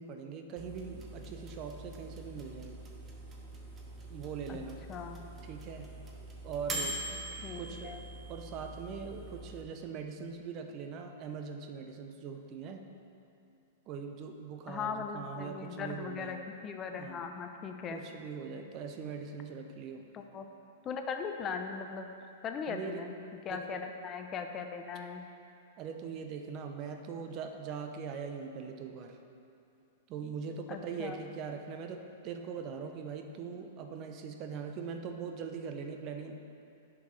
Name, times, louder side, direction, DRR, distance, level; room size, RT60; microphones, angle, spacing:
voice 1, 0.0-2.8 4.1-4.8 5.4-5.9 6.4-7.0 7.4-8.0 8.3-12.8 13.9-16.3 17.0-17.2 17.9-20.1 22.7-23.1 23.5-23.8 25.8-29.2 30.1-36.3, right 6 dB, 40° right, 5 dB, 0.7 m, -41 dB
sound 1, 0.6-9.6, right 2 dB, 25° right, 1.2 m, -43 dB
voice 2, 4.9-5.3 7.4-8.0 14.7-18.0 20.1-20.5 20.8-22.1 22.4-23.1 23.5-25.3 30.7-31.2, left 6 dB, 30° left, 5 dB, 0.6 m, -39 dB
10.5 x 6.0 x 3.3 m, 2.6 s
hypercardioid pair, 105°, 0 cm